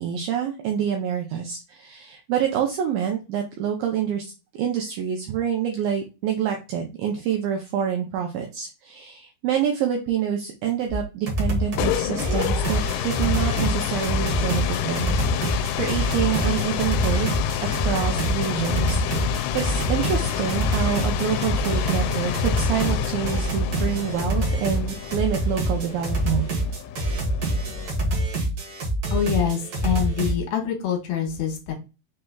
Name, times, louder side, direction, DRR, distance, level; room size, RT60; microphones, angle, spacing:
voice 1, 0.0-4.3 4.6-17.4 17.8-26.4, right 8 dB, 80° right, 2 dB, 2.1 m, -27 dB
sound 1, 10.9-11.0 11.3-11.9 12.2-30.4, right 1 dB, 65° right, 1.6 m, -26 dB
sound 2, 11.5-28.2, left 11 dB, 90° left, 2.6 m, -28 dB
voice 2, 29.1-31.7, left 9 dB, 70° left, 2 dB, 2.9 m, -25 dB
6.3 x 3.2 x 2.3 m, 0.29 s
omnidirectional pair, 4.7 m